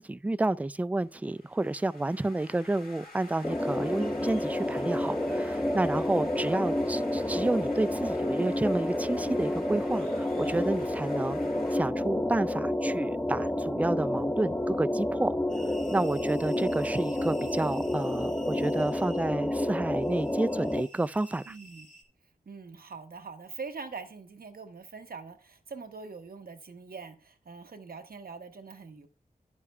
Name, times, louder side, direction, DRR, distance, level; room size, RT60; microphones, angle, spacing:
voice 1, 0.0-11.4 11.7-15.3 15.9-21.5, right 2 dB, 10° right, 0.3 m, -30 dB
sound 1, 1.1-11.8, left 2 dB, 80° left, 1.8 m, -50 dB
sound 2, 3.4-20.8, left 1 dB, 10° left, 0.7 m, -30 dB
sound 3, 15.5-22.0, equal, 60° left, 3.8 m, -52 dB
voice 2, 21.5-21.9 22.5-29.1, right 4 dB, 85° right, 0.9 m, -43 dB
11.0 x 9.6 x 2.3 m
wide cardioid pair, 55°, 15 cm